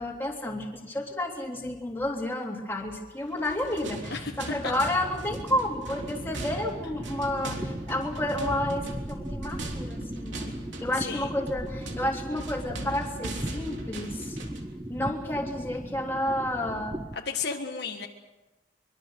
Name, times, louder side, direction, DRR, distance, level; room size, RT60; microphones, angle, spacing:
voice 1, 0.0-10.5 10.8-14.4 14.9-16.9, left 1 dB, 10° left, -1 dB, 3.2 m, -31 dB
sound 1, 3.3-14.7, right 1 dB, 65° right, 3.3 m, -39 dB
sound 2, 5.3-17.2, right 1 dB, 15° right, 0.9 m, -38 dB
voice 2, 10.9-11.3 17.1-18.1, left 5 dB, 55° left, 2 dB, 1.6 m, -33 dB
24.0 x 23.5 x 6.4 m, 1.1 s
head